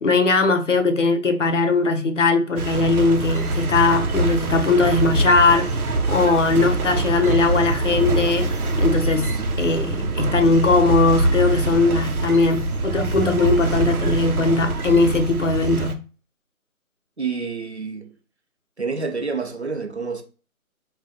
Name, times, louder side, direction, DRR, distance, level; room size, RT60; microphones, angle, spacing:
voice 1, 0.0-5.7 6.1-8.5 8.8-9.3 9.6-16.0, left 3 dB, 60° left, 0.6 m, -19 dB
sound 1, 2.6-15.9, right 2 dB, 80° right, 0.7 m, -24 dB
voice 2, 17.2-18.1 18.8-20.2, right 4 dB, 50° right, 0.6 m, -28 dB
2.4 x 2.3 x 3.8 m
figure-of-eight pair, 180°, 43 cm